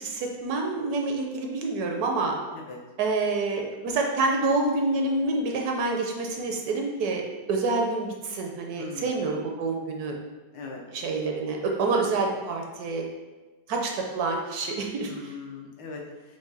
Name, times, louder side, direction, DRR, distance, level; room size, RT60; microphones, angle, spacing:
voice 1, 0.0-2.3 3.0-7.2 7.5-10.2 10.9-13.0 13.7-15.3, right 3 dB, 70° right, 1 dB, 1.0 m, -27 dB
voice 2, 8.8-9.3 10.5-10.8 11.9-12.1 15.0-16.4, left 4 dB, 85° left, -1 dB, 1.4 m, -40 dB
4.7 x 2.2 x 3.9 m, 1.2 s
omnidirectional pair, 1.8 m